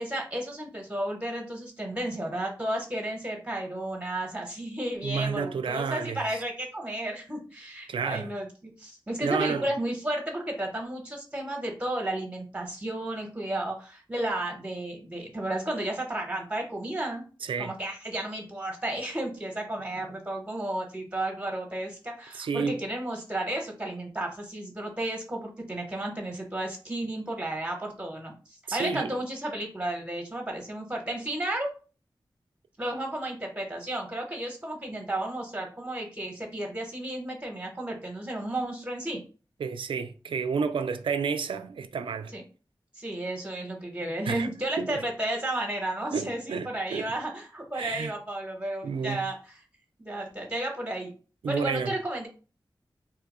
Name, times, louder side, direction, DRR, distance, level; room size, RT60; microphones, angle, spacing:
voice 1, 0.0-17.3 17.6-31.7 32.8-39.2 42.3-42.4 42.9-49.3 50.0-51.1 51.5-52.3, right 1 dB, 15° right, 1.0 m, -33 dB
voice 2, 5.0-6.4 7.9-8.3 9.2-9.7 17.4-17.7 22.3-22.8 28.7-29.2 39.6-42.3 44.3-44.5 44.8-45.0 46.1-47.1 47.7-48.1 48.8-49.3 51.4-51.9, right 5 dB, 90° right, 0.3 m, -30 dB
2.8 x 2.3 x 4.1 m
cardioid pair, 50°, 8 cm